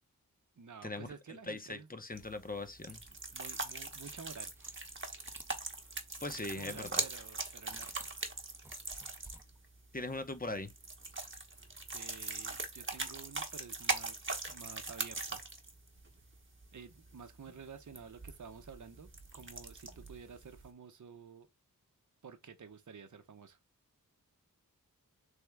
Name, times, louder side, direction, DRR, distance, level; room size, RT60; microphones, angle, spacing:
voice 1, 0.6-1.9 3.1-4.5 6.3-8.1 11.9-15.4 16.7-21.5 22.2-23.6, right 6 dB, 55° right, 0.7 m, -51 dB
voice 2, 1.5-3.0 6.2-7.0 9.9-10.7, left 2 dB, 25° left, 0.8 m, -40 dB
sound 1, 2.1-20.7, right 3 dB, 35° right, 1.1 m, -42 dB
sound 2, 4.3-5.0 5.3-5.6 6.7-7.2 7.7-8.1 8.5-9.6, right 1 dB, 5° right, 0.7 m, -52 dB
3.5 x 3.4 x 3.4 m
wide cardioid pair, 60°, 35 cm